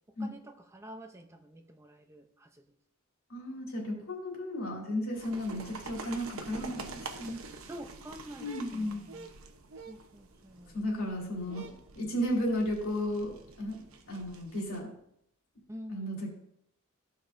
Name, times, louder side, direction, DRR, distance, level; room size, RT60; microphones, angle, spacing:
voice 1, 0.2-2.7 7.5-9.3 9.9-10.8 15.7-16.3, equal, 15° right, 5 dB, 0.6 m, -48 dB
voice 2, 3.3-7.4 8.4-9.0 10.7-14.9 15.9-16.3, equal, 85° left, -2 dB, 2.8 m, -34 dB
sound 1, 5.1-14.8, right 3 dB, 80° right, 0.9 m, -47 dB
14.5 x 5.3 x 2.6 m, 0.72 s
head